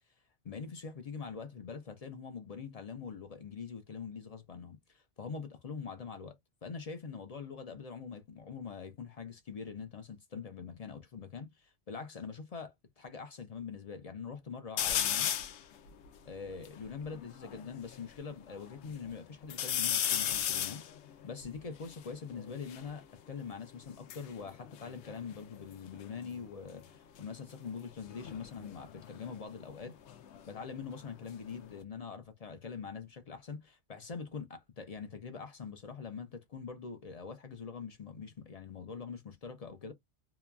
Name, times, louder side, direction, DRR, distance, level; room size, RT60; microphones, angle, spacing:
voice 1, 0.4-6.4 6.6-15.3 16.2-20.8 21.2-30.0 30.5-39.9, left 5 dB, 45° left, 0.5 m, -44 dB
sound 1, 14.8-15.6 16.2-16.3 16.4-18.0 18.5-19.1 19.5-22.9 23.8-25.7 26.0-26.5 28.0-30.7 31.0-31.8, left 10 dB, 75° left, 0.9 m, -36 dB
2.9 x 2.2 x 2.3 m
omnidirectional pair, 1.2 m